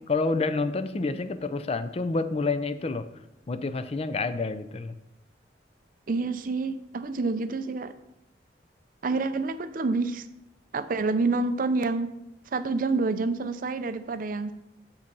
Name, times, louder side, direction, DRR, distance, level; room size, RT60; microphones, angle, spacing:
voice 1, 0.1-3.1 3.5-5.0, left 3 dB, 35° left, 11 dB, 0.4 m, -28 dB
voice 2, 6.1-7.9 9.0-10.3 10.7-12.1 12.5-14.5, right 3 dB, 50° right, 11 dB, 0.5 m, -28 dB
7.1 x 5.3 x 5.3 m, 0.88 s
head